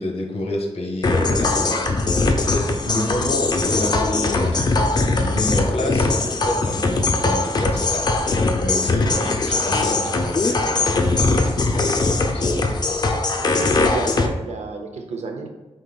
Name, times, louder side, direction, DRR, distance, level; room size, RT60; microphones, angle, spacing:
voice 1, 0.0-4.7 5.2-8.1 8.6-12.7, left 1 dB, 60° left, 2 dB, 0.8 m, -29 dB
sound 1, 1.0-14.3, left 3 dB, 40° left, 0.4 m, -20 dB
voice 2, 13.6-15.5, right 3 dB, 85° right, 4 dB, 0.6 m, -31 dB
5.2 x 3.8 x 2.3 m, 1.1 s
wide cardioid pair, 125°, 11 cm